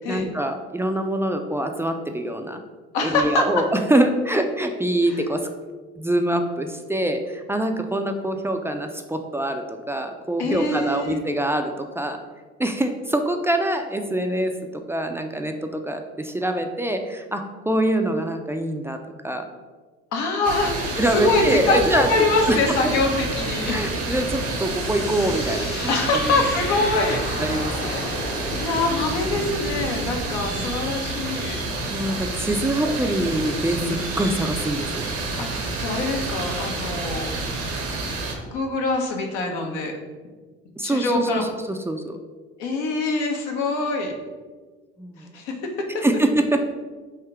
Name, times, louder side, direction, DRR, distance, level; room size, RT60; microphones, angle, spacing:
voice 1, 0.1-2.6 3.0-5.5 6.0-12.2 12.6-19.4 21.0-22.1 22.5-22.6 22.8-22.9 23.7-26.2 27.4-28.2 30.6-30.7 31.9-35.0 40.8-42.2 45.0-45.2 46.0-46.6, right 1 dB, 10° right, 5 dB, 0.3 m, -24 dB
voice 2, 2.9-3.5 10.4-11.2 20.1-23.8 25.9-27.2 27.8-31.6 35.4-35.5 35.8-37.3 38.5-39.9 40.8-41.5 42.6-44.1 45.3-45.5, left 3 dB, 80° left, 2 dB, 0.8 m, -24 dB
sound 1, 20.4-38.3, right 3 dB, 75° right, 1.0 m, -29 dB
sound 2, 24.1-31.2, left 4 dB, 30° left, 0.6 m, -36 dB
3.5 x 2.8 x 4.4 m, 1.4 s
hypercardioid pair, 60°, 34 cm